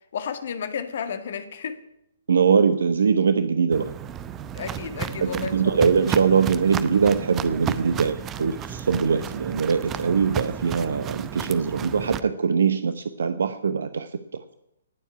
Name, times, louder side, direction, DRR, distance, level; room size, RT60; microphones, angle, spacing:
voice 1, 0.1-1.8 4.5-5.8, left 7 dB, 55° left, 9 dB, 1.8 m, -32 dB
voice 2, 2.3-3.9 5.2-14.1, right 6 dB, 60° right, 12 dB, 0.8 m, -22 dB
Walk footsteps, 3.7-12.2, right 9 dB, 20° right, 0.8 m, -33 dB
18.5 x 7.3 x 9.5 m, 0.82 s
figure-of-eight pair, 120°, 0 cm